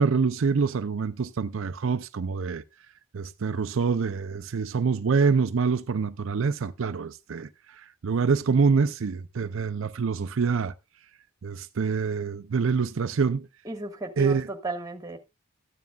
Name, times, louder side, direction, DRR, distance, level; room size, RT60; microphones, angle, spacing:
voice 1, 0.0-2.6 3.1-10.7 11.4-13.5 14.2-14.5, right 5 dB, 65° right, 0.5 m, -26 dB
voice 2, 13.6-15.2, right 2 dB, 15° right, 1.6 m, -34 dB
14.0 x 9.4 x 2.4 m
head